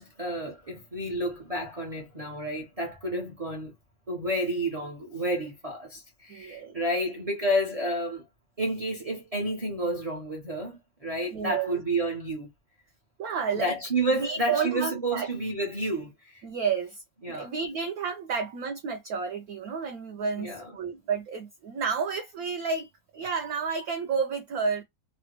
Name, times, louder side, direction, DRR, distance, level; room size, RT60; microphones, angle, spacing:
voice 1, 0.0-3.7 4.1-8.2 8.6-12.5 13.6-16.4 17.2-17.5 20.4-20.7, right 1 dB, 45° right, 0.4 m, -30 dB
voice 2, 6.3-6.8 11.3-11.8 13.2-13.8 14.2-15.3 16.4-17.0 17.3-22.9 23.1-24.8, right 6 dB, 70° right, 0.9 m, -31 dB
3.3 x 2.1 x 2.9 m
omnidirectional pair, 2.1 m